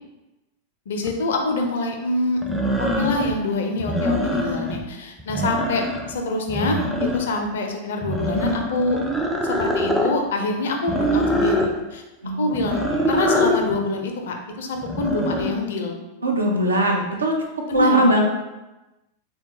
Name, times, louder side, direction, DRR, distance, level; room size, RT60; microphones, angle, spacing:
voice 1, 0.9-2.4 2.8-5.8 6.1-6.9 7.1-9.0 9.4-12.0 12.4-15.9 17.7-18.1, left 2 dB, 60° left, 3 dB, 0.4 m, -25 dB
sound 1, 1.0-1.1 2.4-3.3 3.8-4.8 5.2-6.1 6.5-7.5 8.0-10.1 10.9-11.7 12.5-13.6 14.8-15.5, equal, ahead, 0.4 m, -24 dB
voice 2, 16.2-18.2, right 1 dB, 75° right, 1 dB, 0.5 m, -21 dB
3.5 x 2.2 x 2.8 m, 1.0 s
figure-of-eight pair, 90°, 0 cm